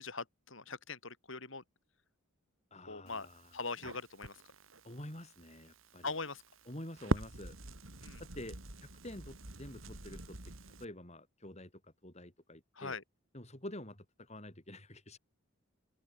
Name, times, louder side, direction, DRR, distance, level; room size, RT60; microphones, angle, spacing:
voice 1, 0.0-1.6 2.9-3.3 3.5-4.3 6.0-6.4 8.0-8.2 12.8-13.0, left 4 dB, 70° left, 4.1 m, -41 dB
voice 2, 2.7-3.6 4.8-6.2 6.7-7.6 8.2-10.5 10.8-13.0 13.3-15.2, left 1 dB, 35° left, 7.6 m, -48 dB
Crackle, 3.1-10.8, right 1 dB, 75° right, 3.4 m, -43 dB
open air
head